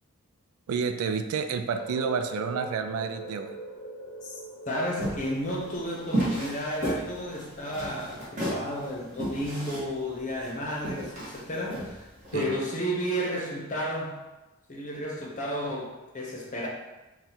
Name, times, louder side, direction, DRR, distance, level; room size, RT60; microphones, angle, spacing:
voice 1, 0.7-3.6 12.3-12.5, right 6 dB, 75° right, 9 dB, 0.3 m, -30 dB
sound 1, 1.8-7.6, right 1 dB, 85° left, 0.8 m, -42 dB
voice 2, 4.7-14.2 14.7-16.7, equal, 35° left, -2 dB, 0.8 m, -32 dB
sound 2, 5.0-12.4, right 1 dB, 35° right, 1.2 m, -33 dB
3.9 x 2.4 x 4.2 m, 1.1 s
head